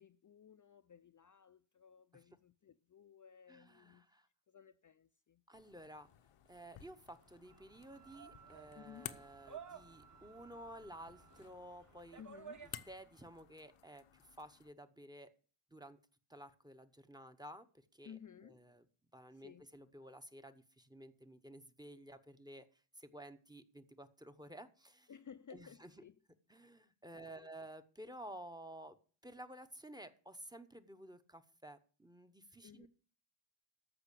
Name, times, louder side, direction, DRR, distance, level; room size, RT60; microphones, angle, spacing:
voice 1, 0.0-4.1 4.5-5.4 8.7-9.2 12.2-12.7 18.0-18.7 19.3-19.8 25.1-26.2 27.3-27.5 32.6-32.9, left 8 dB, 40° left, 0.5 m, -57 dB
voice 2, 3.5-4.3 5.5-6.1 6.5-12.2 12.9-15.3 15.7-16.0 16.3-18.2 18.4-18.8 19.1-25.1 25.5-25.9 26.5-29.0 29.2-32.9, right 1 dB, 10° right, 0.9 m, -53 dB
sound 1, 5.5-14.7, left 10 dB, 90° left, 1.0 m, -56 dB
sound 2, 6.8-13.2, right 7 dB, 35° right, 1.5 m, -56 dB
Wind instrument woodwind instrument, 7.5-11.5, right 7 dB, 90° right, 1.7 m, -64 dB
14.0 x 5.6 x 8.4 m
wide cardioid pair, 140°, 50 cm